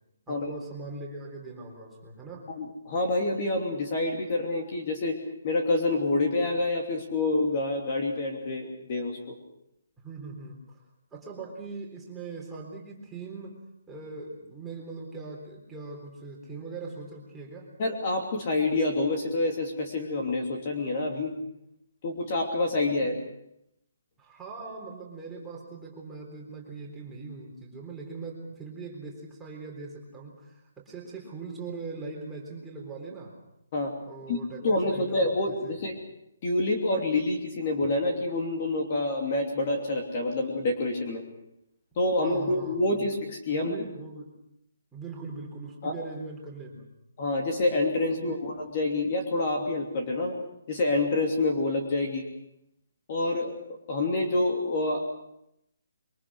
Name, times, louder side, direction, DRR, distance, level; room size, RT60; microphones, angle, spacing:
voice 1, 0.3-2.5 10.0-10.6 11.1-13.6 13.9-17.7 24.2-33.3 34.1-35.8 42.2-43.1 43.5-44.3 44.9-46.9 48.2-48.5, right 4 dB, 5° right, -3 dB, 3.9 m, -41 dB
voice 2, 2.5-5.2 5.4-9.4 17.8-21.3 22.0-23.2 33.7-33.9 34.3-36.0 36.4-41.2 42.0-43.9 45.8-45.9 47.2-50.3 50.7-52.3 53.1-53.6 53.9-55.0, left 2 dB, 30° left, 2 dB, 2.9 m, -27 dB
26.0 x 23.5 x 6.4 m, 0.79 s
hypercardioid pair, 175°, 0 cm